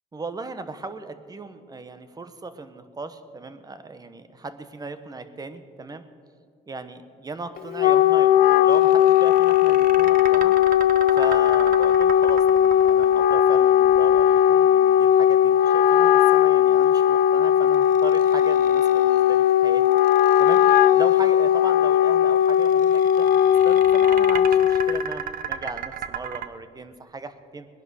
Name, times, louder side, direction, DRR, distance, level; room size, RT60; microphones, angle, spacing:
voice 1, 0.1-6.0 6.7-10.5 11.1-19.8 20.4-20.6 20.9-27.7, right 3 dB, 20° right, 10 dB, 1.1 m, -37 dB
Wind instrument woodwind instrument, 7.6-25.0, left 10 dB, 60° left, 0.5 m, -18 dB
sound 1, 8.7-14.9 17.7-19.3 19.8-21.2 22.4-26.5, right 8 dB, 55° right, 0.8 m, -36 dB
20.0 x 10.5 x 6.5 m, 2.2 s
cardioid pair, 110°, 17 cm